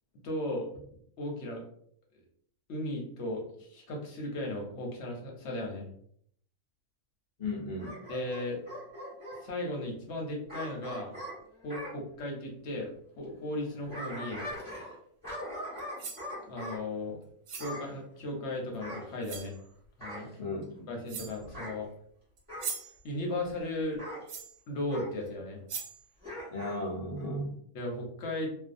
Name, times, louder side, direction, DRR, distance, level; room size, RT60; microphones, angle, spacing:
voice 1, 0.2-0.7 1.2-1.6 2.7-5.9 8.1-8.6 9.4-11.1 11.6-12.9 13.2-14.4 16.4-17.2 17.5-19.5 20.0-20.3 20.9-21.9 23.0-24.0 24.7-25.6 27.7-28.5, left 1 dB, 60° left, 0 dB, 0.8 m, -36 dB
voice 2, 7.4-8.0 20.4-20.9 26.5-27.6, left 1 dB, 75° left, -2 dB, 0.3 m, -35 dB
Bark / Growling, 7.8-9.4 10.5-11.9 13.6-15.0 15.2-16.8 17.6-17.9 18.8-19.6 20.0-20.3 21.4-21.8 22.5-22.8 24.0-24.2 24.9-25.1 26.2-26.8 27.2-27.3, equal, 5° right, 1.3 m, -41 dB
sound 1, 15.8-16.3 17.5-17.8 18.7-18.8 19.2-19.6 20.6-20.7 21.1-21.5 22.4-23.0 24.3-24.6 25.3-25.4 25.7-26.0, right 6 dB, 90° right, 1.2 m, -40 dB
2.6 x 2.3 x 2.5 m, 0.65 s
omnidirectional pair, 1.6 m